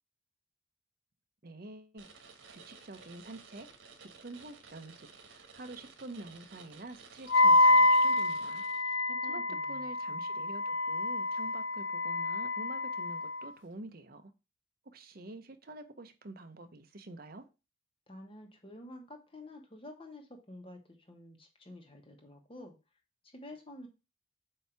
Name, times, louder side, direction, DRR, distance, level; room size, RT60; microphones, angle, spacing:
voice 1, 1.4-2.1 2.5-3.7 4.0-8.6 9.2-14.3 14.8-17.5, right 2 dB, 50° right, 0.7 m, -48 dB
sound 1, 2.0-9.2, right 4 dB, 90° right, 1.3 m, -54 dB
Wind instrument woodwind instrument, 7.3-13.4, left 2 dB, 75° left, 0.4 m, -27 dB
voice 2, 9.1-9.9 18.1-22.7 23.2-23.9, left 1 dB, 30° left, 1.2 m, -49 dB
7.7 x 2.8 x 4.5 m
head